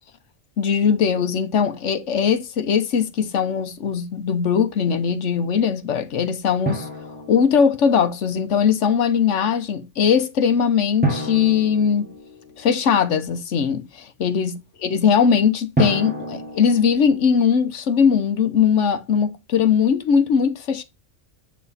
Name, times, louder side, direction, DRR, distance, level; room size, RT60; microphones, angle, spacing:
voice 1, 0.6-6.9 7.3-12.1 12.6-14.6 14.8-20.8, left 7 dB, 80° left, 1.2 m, -20 dB
Drum, 6.7-8.1 11.0-12.8 15.8-17.4, right 1 dB, 10° right, 1.6 m, -28 dB
9.4 x 3.7 x 4.1 m
omnidirectional pair, 1.2 m